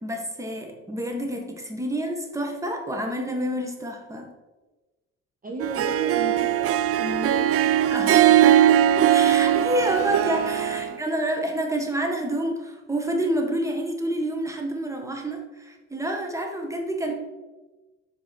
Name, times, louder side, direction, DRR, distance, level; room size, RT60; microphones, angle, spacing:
voice 1, 0.0-4.3 7.6-8.7 9.1-17.1, right 1 dB, 10° right, 3 dB, 1.3 m, -28 dB
voice 2, 5.4-7.8 10.7-11.0 17.1-17.2, right 1 dB, 30° right, 1 dB, 1.0 m, -36 dB
Harp, 5.6-10.9, right 11 dB, 50° right, 0.4 m, -20 dB
4.9 x 4.8 x 5.9 m, 1.2 s
cardioid pair, 90°, 30 cm